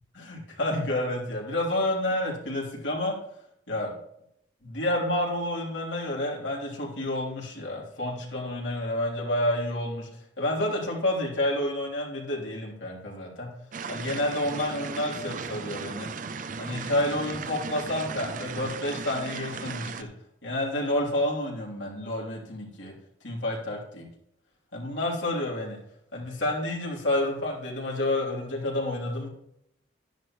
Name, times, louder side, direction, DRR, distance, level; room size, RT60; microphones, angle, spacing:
voice 1, 0.1-3.2 3.7-3.9 4.6-10.1 10.4-13.5 13.9-16.1 16.6-20.1 20.4-22.9 23.2-24.1 24.7-25.8 26.1-29.3, left 1 dB, 80° left, -3 dB, 3.3 m, -29 dB
sound 1, 13.7-20.0, right 5 dB, 40° right, 0.5 m, -36 dB
12.0 x 10.5 x 3.1 m, 0.77 s
head